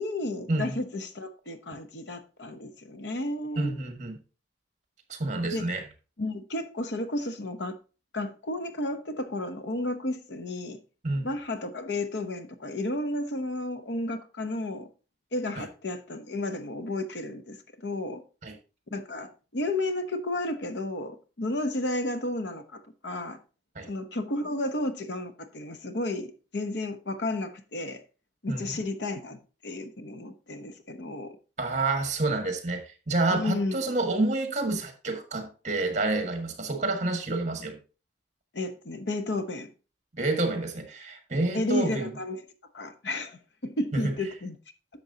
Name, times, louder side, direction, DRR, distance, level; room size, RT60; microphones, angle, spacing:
voice 1, 0.0-3.7 5.5-5.7 6.2-7.7 8.1-10.8 11.2-14.9 15.3-18.2 18.9-23.4 23.9-28.0 28.4-31.4 33.3-33.8 38.5-39.7 41.5-42.4 42.7-44.6, left 2 dB, 80° left, 0.9 m, -32 dB
voice 2, 3.6-4.2 5.1-5.8 11.0-11.3 15.6-15.7 18.4-18.6 23.7-23.9 28.5-28.7 31.6-37.8 40.2-42.1 43.9-44.1, right 2 dB, 40° right, 1.7 m, -28 dB
10.5 x 7.0 x 2.8 m
head